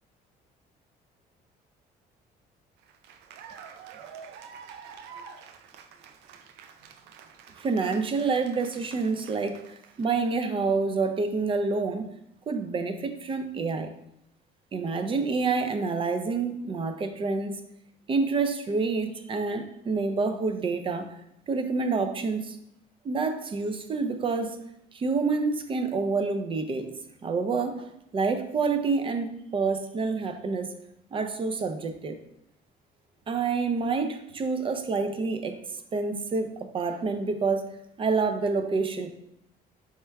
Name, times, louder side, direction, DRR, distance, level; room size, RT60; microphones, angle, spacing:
Cheering / Applause, 2.8-10.3, right 7 dB, 85° right, 0.4 m, -48 dB
voice 1, 7.6-9.5 10.0-12.1 12.5-13.9 14.7-17.5 18.1-21.1 21.5-22.6 23.0-24.6 24.9-26.9 27.2-30.7 31.1-32.2 33.3-35.6 35.9-37.7 38.0-39.1, right 4 dB, 30° right, 8 dB, 0.5 m, -28 dB
4.3 x 3.4 x 3.4 m, 0.79 s
cardioid pair, 110°, 17 cm